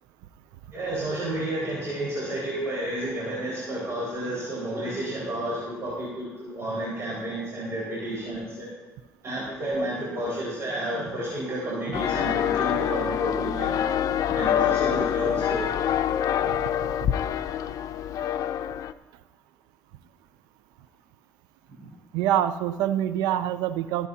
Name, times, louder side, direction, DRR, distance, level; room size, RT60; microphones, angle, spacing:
voice 1, 0.7-8.7 9.2-13.8 14.3-15.7, right 1 dB, 45° right, -7 dB, 5.2 m, -31 dB
sound 1, 11.9-18.9, left 10 dB, 60° left, 0.6 m, -26 dB
voice 2, 22.1-24.1, right 11 dB, 80° right, 13 dB, 0.6 m, -25 dB
24.0 x 9.6 x 2.9 m, 1.2 s
supercardioid pair, 75°, 7 cm